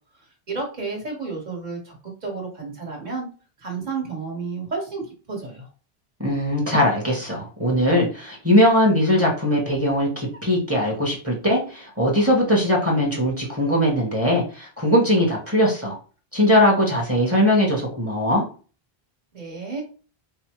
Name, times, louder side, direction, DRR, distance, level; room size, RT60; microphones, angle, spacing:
voice 1, 0.5-3.3 3.6-5.7 19.3-19.8, right 4 dB, 45° right, -1 dB, 1.5 m, -31 dB
voice 2, 6.2-16.0 16.3-18.4, left 1 dB, 15° right, -2 dB, 1.0 m, -20 dB
4.7 x 2.0 x 3.0 m, 0.37 s
omnidirectional pair, 1.0 m